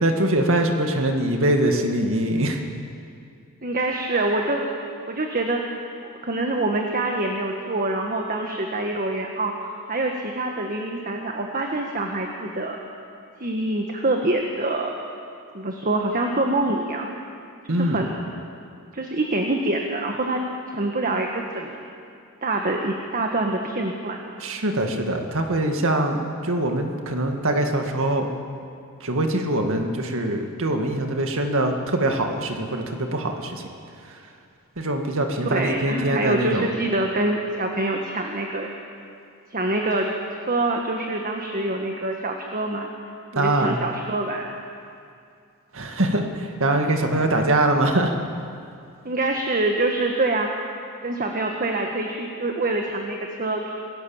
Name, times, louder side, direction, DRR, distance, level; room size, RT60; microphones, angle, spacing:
voice 1, 0.0-2.6 17.7-18.0 24.4-28.3 29.0-33.6 34.8-36.7 43.4-43.8 45.7-48.2, right 1 dB, 65° right, 4 dB, 2.2 m, -23 dB
voice 2, 3.6-4.6 5.1-12.8 13.4-14.9 15.5-17.1 17.7-18.2 18.9-20.4 20.7-21.7 22.4-24.2 35.4-38.7 39.5-40.1 40.3-42.9 43.3-44.5 49.0-50.5 51.0-53.7, right 2 dB, 40° right, 2 dB, 1.6 m, -25 dB
27.5 x 16.5 x 7.3 m, 2.4 s
head